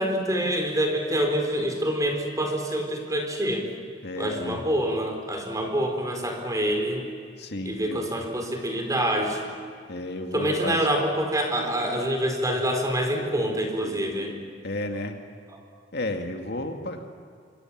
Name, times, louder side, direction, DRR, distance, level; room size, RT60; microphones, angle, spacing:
voice 1, 0.0-3.7 4.2-7.0 7.7-9.4 10.3-14.4 15.5-15.6, right 1 dB, 20° right, 3 dB, 4.1 m, -26 dB
voice 2, 4.0-4.6 7.4-8.0 9.9-10.9 14.6-15.2 15.9-17.0, left 1 dB, 65° left, 4 dB, 2.2 m, -32 dB
26.0 x 25.0 x 7.4 m, 2.1 s
head